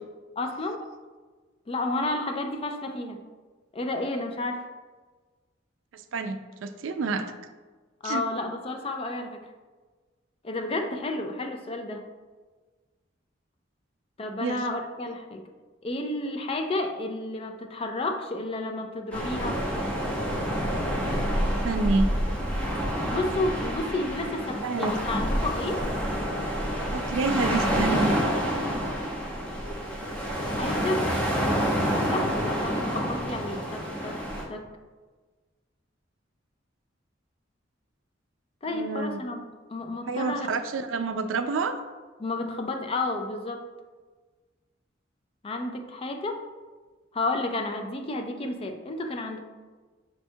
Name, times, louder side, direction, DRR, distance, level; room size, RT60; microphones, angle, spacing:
voice 1, 0.4-0.8 1.7-3.2 3.7-4.6 8.0-9.4 10.4-12.0 14.2-15.4 15.8-19.6 23.1-25.9 28.6-28.9 30.5-34.2 34.5-34.7 38.6-39.4 39.7-40.5 42.2-43.6 45.4-46.5 47.1-49.4, left 2 dB, 30° left, 5 dB, 0.4 m, -31 dB
voice 2, 5.9-7.3 8.0-8.2 14.4-14.7 21.1-21.3 21.6-22.1 24.6-24.9 26.9-28.2 38.7-39.2 40.1-41.8, right 3 dB, 80° right, 8 dB, 0.4 m, -28 dB
sound 1, 19.1-34.4, equal, 5° left, 0.7 m, -28 dB
5.3 x 2.3 x 4.4 m, 1.3 s
head